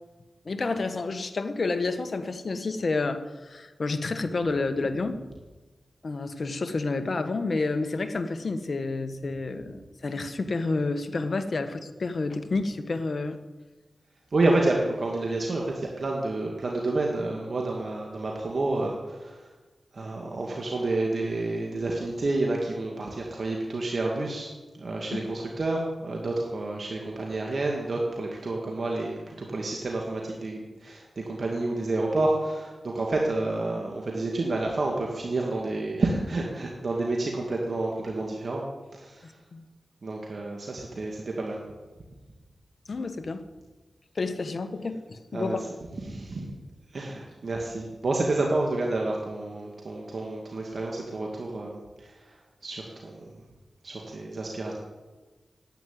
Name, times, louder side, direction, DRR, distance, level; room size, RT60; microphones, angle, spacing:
voice 1, 0.4-5.2 6.0-13.4 25.1-25.2 39.2-39.6 42.9-43.4 44.1-45.7, left 3 dB, 60° left, 9 dB, 1.2 m, -30 dB
voice 2, 14.3-19.5 19.9-24.5 24.7-38.6 38.9-39.4 40.0-41.6 45.3-45.6 46.1-46.5 46.9-52.4 52.6-53.2 53.8-54.7, right 2 dB, 60° right, -1 dB, 2.1 m, -29 dB
11.0 x 9.0 x 9.6 m, 1.2 s
cardioid pair, 55°, 0 cm